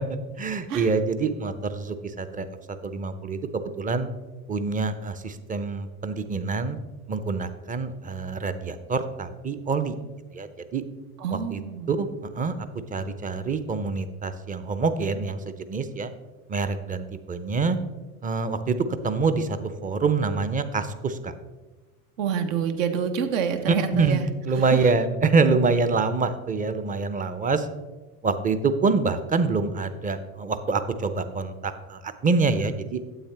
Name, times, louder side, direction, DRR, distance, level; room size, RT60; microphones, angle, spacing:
voice 1, 0.1-2.5 2.8-3.4 3.8-4.1 4.5-6.8 7.1-10.0 10.3-10.8 11.3-11.6 11.9-12.1 12.3-15.4 15.7-16.1 16.5-17.8 18.2-18.8 19.0-21.3 23.7-27.7 28.2-33.0, right 4 dB, 20° right, 11 dB, 0.6 m, -26 dB
voice 2, 11.2-11.9 22.2-24.3 24.5-24.9, right 7 dB, 65° right, 8 dB, 1.0 m, -27 dB
8.9 x 8.1 x 3.3 m, 1.2 s
figure-of-eight pair, 70°, 42 cm